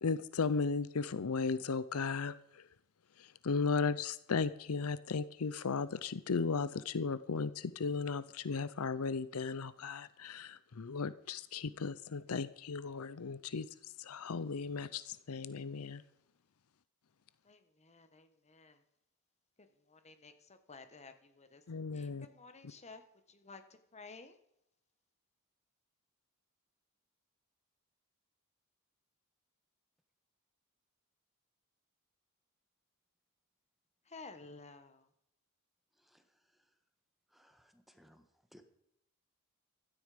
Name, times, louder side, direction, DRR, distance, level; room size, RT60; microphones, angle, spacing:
voice 1, 0.0-2.6 3.2-13.7 14.0-16.0 21.7-22.3, left 4 dB, 75° left, 16 dB, 0.6 m, -36 dB
voice 2, 17.4-18.8 19.9-21.6 21.9-23.0 23.3-23.6 23.9-24.4 34.1-35.0, left 4 dB, 30° left, 9 dB, 1.4 m, -53 dB
voice 3, 37.3-38.2 38.5-38.6, equal, ahead, 7 dB, 1.4 m, -63 dB
16.0 x 13.0 x 5.1 m, 0.78 s
head